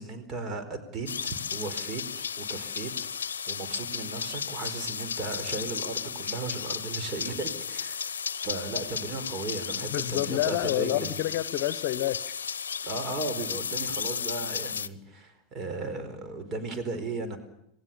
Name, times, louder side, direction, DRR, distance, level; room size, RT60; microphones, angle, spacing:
voice 1, 0.0-2.0 2.4-11.2 12.8-17.4, right 3 dB, 35° right, 9 dB, 4.6 m, -36 dB
sound 1, 1.1-14.9, left 6 dB, 75° left, 0.8 m, -34 dB
voice 2, 9.9-12.4, left 14 dB, 50° left, 16 dB, 1.0 m, -28 dB
27.0 x 18.0 x 7.2 m, 0.80 s
figure-of-eight pair, 85°, 0 cm